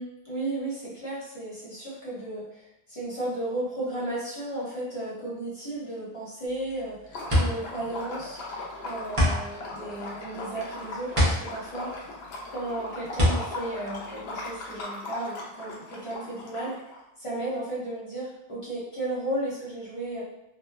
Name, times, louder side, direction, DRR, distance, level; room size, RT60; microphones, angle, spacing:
voice 1, 0.0-8.4 8.8-11.9 12.5-16.7 17.2-20.2, right 1 dB, 35° left, -9 dB, 0.8 m, -34 dB
sound 1, 6.5-14.8, left 1 dB, 35° right, 0.8 m, -27 dB
Liquid, 7.1-17.0, left 2 dB, 90° left, 0.8 m, -39 dB
2.7 x 2.1 x 2.2 m, 0.88 s
omnidirectional pair, 1.0 m